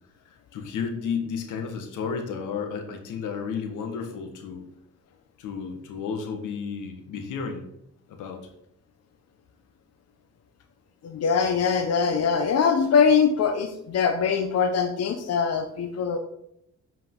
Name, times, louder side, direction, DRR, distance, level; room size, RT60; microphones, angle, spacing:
voice 1, 0.2-4.6 5.4-7.6 8.1-8.4, left 6 dB, 85° left, 5 dB, 1.4 m, -32 dB
voice 2, 11.0-16.2, left 6 dB, 55° left, 6 dB, 0.8 m, -22 dB
7.8 x 5.3 x 3.8 m, 0.76 s
cardioid pair, 90°, 30 cm